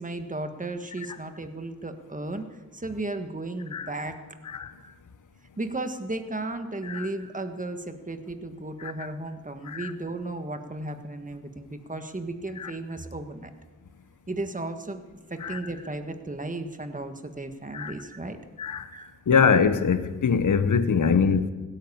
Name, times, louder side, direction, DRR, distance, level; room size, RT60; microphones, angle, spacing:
voice 1, 0.0-2.5 2.7-4.2 4.8-4.9 5.6-13.5 14.3-15.0 15.3-18.4 18.9-19.1 20.8-21.2, right 2 dB, 25° right, 7 dB, 1.5 m, -35 dB
voice 2, 19.3-21.5, left 6 dB, 75° left, 11 dB, 0.9 m, -23 dB
17.0 x 9.1 x 8.6 m, 1.3 s
cardioid pair, 45°, 31 cm